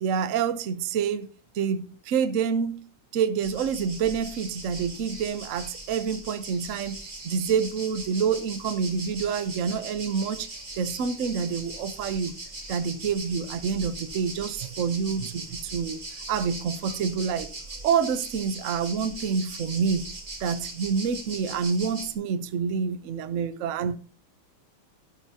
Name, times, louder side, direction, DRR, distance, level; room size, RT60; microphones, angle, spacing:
voice 1, 0.0-1.3 1.5-2.9 3.1-7.0 7.2-10.5 10.8-12.3 12.7-16.0 16.3-17.5 17.8-20.1 20.4-24.0, right 6 dB, 60° right, 0.8 m, -27 dB
sound 1, 3.4-22.1, right 2 dB, 25° right, 2.4 m, -40 dB
12.0 x 11.5 x 2.8 m
omnidirectional pair, 2.4 m